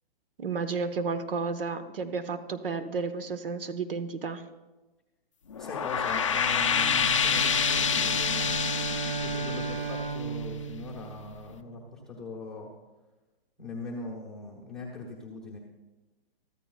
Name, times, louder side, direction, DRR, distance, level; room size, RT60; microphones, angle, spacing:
voice 1, 0.4-4.4, right 4 dB, 65° right, 10 dB, 1.1 m, -32 dB
sound 1, 5.5-10.8, left 7 dB, 30° left, 0.5 m, -27 dB
voice 2, 5.6-8.6 9.2-12.7 13.6-15.6, left 3 dB, ahead, -6 dB, 0.9 m, -40 dB
Bowed string instrument, 6.6-11.8, right 5 dB, 80° right, 3.2 m, -35 dB
23.0 x 14.0 x 2.3 m, 1.1 s
hypercardioid pair, 175°, 30 cm